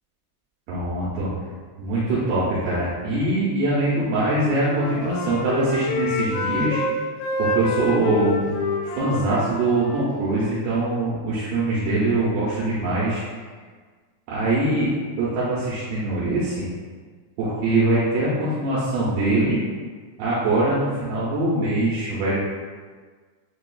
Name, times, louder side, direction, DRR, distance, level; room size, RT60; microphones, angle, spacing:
voice 1, 0.7-1.3 1.8-6.8 7.4-13.2 14.3-14.9 15.2-16.6 17.4-19.6 20.2-22.3, right 2 dB, 80° right, -9 dB, 2.4 m, -23 dB
Wind instrument woodwind instrument, 4.2-6.9 7.2-10.8, left 2 dB, 85° left, 2.7 m, -28 dB
6.7 x 2.4 x 2.3 m, 1.5 s
omnidirectional pair, 4.9 m